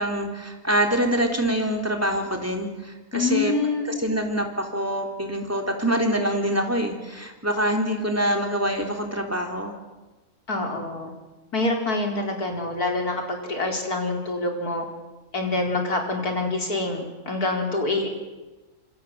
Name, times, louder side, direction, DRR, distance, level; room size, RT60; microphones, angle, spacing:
voice 1, 0.0-3.5 4.0-9.8, equal, 10° right, 3 dB, 3.7 m, -25 dB
voice 2, 3.1-3.9 10.5-11.1 11.5-14.9 15.3-18.1, left 2 dB, 70° left, 2 dB, 4.9 m, -26 dB
27.0 x 25.0 x 7.6 m, 1.1 s
omnidirectional pair, 1.7 m